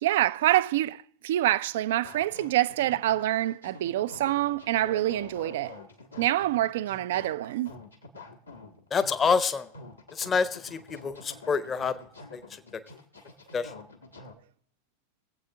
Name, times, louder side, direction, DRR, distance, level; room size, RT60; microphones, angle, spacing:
voice 1, 0.0-5.8 6.2-7.8, right 14 dB, 60° right, 0.3 m, -26 dB
sound 1, 2.0-14.3, left 3 dB, 85° left, 1.4 m, -47 dB
voice 2, 8.9-9.7 10.1-12.0 12.3-12.4 13.5-13.7, left 5 dB, 25° left, 0.7 m, -27 dB
22.5 x 7.9 x 2.8 m
figure-of-eight pair, 85°, 0 cm